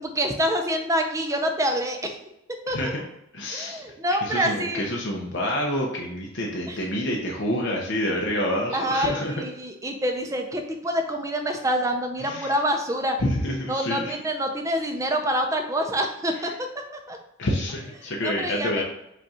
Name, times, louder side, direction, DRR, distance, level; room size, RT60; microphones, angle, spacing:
voice 1, 0.0-2.2 2.7-2.8 3.5-4.8 6.7-6.8 8.7-13.2 13.7-16.5 17.1-17.2 18.0-18.8, equal, 15° right, 4 dB, 0.5 m, -26 dB
voice 2, 2.7-3.0 3.3-3.8 4.2-9.3 12.2-12.5 13.2-14.2 16.4-16.5 17.4-18.8, left 1 dB, 60° left, -1 dB, 0.6 m, -28 dB
5.2 x 2.4 x 4.2 m, 0.84 s
head